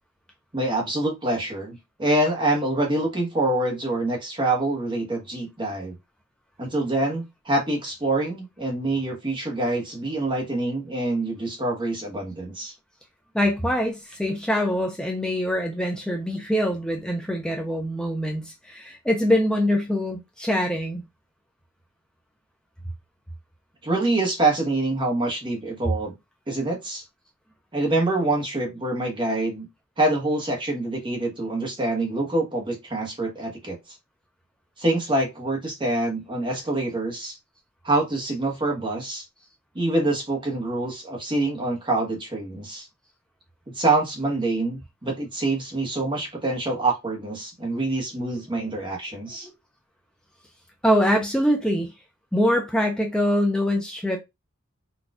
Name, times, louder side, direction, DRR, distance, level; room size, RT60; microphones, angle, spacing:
voice 1, 0.5-6.0 6.6-12.7 23.8-26.1 26.5-27.0 27.7-29.7 30.0-33.8 34.8-37.4 37.8-39.2 39.7-42.9 43.7-49.5, right 2 dB, 25° right, 1.0 m, -25 dB
voice 2, 13.3-21.0 48.7-48.8 50.8-51.9 52.3-54.2, equal, 5° left, 0.4 m, -24 dB
4.0 x 2.3 x 2.4 m
head